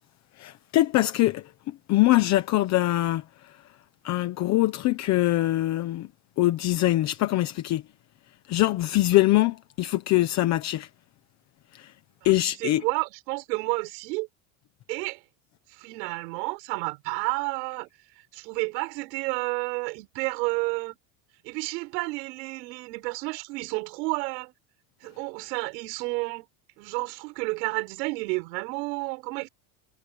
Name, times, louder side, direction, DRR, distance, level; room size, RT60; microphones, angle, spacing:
voice 1, 0.4-3.2 4.0-6.1 6.4-7.8 8.5-10.9 11.7-11.9 12.2-12.8, left 16 dB, 35° left, 1.0 m, -23 dB
voice 2, 12.2-14.3 14.9-15.2 15.8-17.9 18.3-21.0 21.4-24.5 25.0-26.5 26.8-29.5, right 25 dB, 85° right, 7.4 m, -31 dB
cardioid pair, 175°, 48 cm